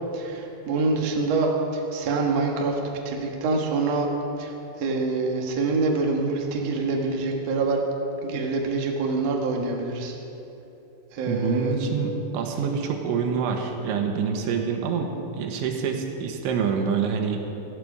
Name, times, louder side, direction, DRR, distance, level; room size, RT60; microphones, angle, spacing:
voice 1, 0.1-4.1 4.4-7.8 8.2-10.2 11.1-11.7, right 3 dB, 55° right, 0 dB, 1.9 m, -26 dB
voice 2, 11.3-17.5, right 6 dB, 90° right, 3 dB, 3.8 m, -26 dB
19.0 x 14.0 x 5.0 m, 2.9 s
omnidirectional pair, 5.3 m